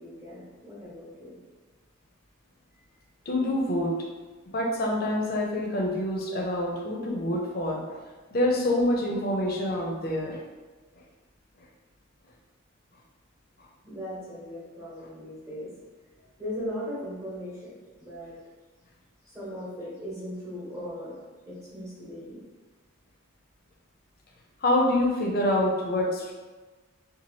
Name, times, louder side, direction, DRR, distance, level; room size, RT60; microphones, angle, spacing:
voice 1, 0.0-1.3 13.8-15.7 16.4-17.7 18.0-18.3 19.2-21.2 21.5-22.4, equal, 15° right, -8 dB, 0.9 m, -38 dB
voice 2, 3.3-3.9 4.5-8.0 8.3-10.4 24.6-26.3, left 1 dB, 50° left, -1 dB, 0.5 m, -26 dB
2.8 x 2.3 x 3.0 m, 1.3 s
head